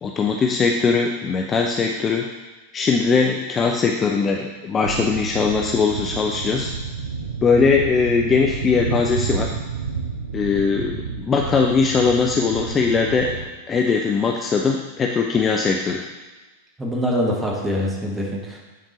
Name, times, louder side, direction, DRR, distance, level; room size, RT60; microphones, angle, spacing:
voice 1, 0.0-2.3 2.7-6.7 7.4-9.5 10.3-13.4 13.7-16.0, left 5 dB, 20° left, 1 dB, 0.5 m, -20 dB
sound 1, 4.8-13.5, right 6 dB, 70° right, 0.8 m, -30 dB
voice 2, 16.8-18.6, equal, 10° right, -2 dB, 1.3 m, -24 dB
9.5 x 4.4 x 3.0 m, 1.2 s
figure-of-eight pair, 90°, 0 cm